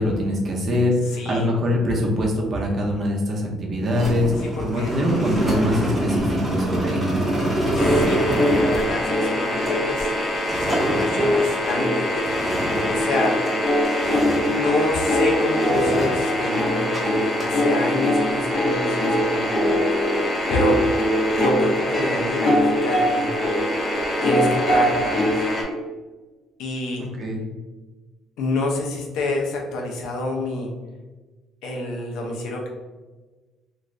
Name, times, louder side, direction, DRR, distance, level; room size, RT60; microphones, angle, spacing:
voice 1, 0.0-7.2 27.2-27.4, left 1 dB, 40° right, -1 dB, 0.7 m, -23 dB
voice 2, 1.1-1.5 4.6-4.9 7.7-10.1 10.6-12.2 12.8-13.4 14.4-19.5 20.5-20.8 21.3-23.3 24.2-25.4 26.6-27.1 28.4-30.7 31.6-32.7, left 2 dB, 80° left, 0 dB, 0.7 m, -27 dB
sound 1, 3.9-13.6 13.8-15.3 15.6-17.0 17.2-17.5, right 1 dB, 5° right, 0.9 m, -26 dB
sound 2, 7.8-25.6, left 1 dB, 25° left, 0.7 m, -22 dB
2.6 x 2.5 x 3.2 m, 1.2 s
cardioid pair, 140°, 0 cm